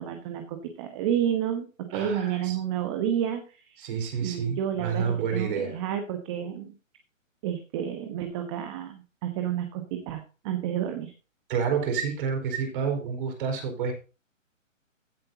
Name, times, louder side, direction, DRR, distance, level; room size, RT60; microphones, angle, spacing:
voice 1, 0.0-3.8 4.2-6.7 7.4-11.1, right 9 dB, 25° right, 6 dB, 1.1 m, -30 dB
voice 2, 1.9-2.6 3.8-5.8 11.5-13.9, right 6 dB, 40° right, 3 dB, 4.5 m, -29 dB
15.5 x 7.7 x 2.8 m, 0.33 s
hypercardioid pair, 150°, 40 cm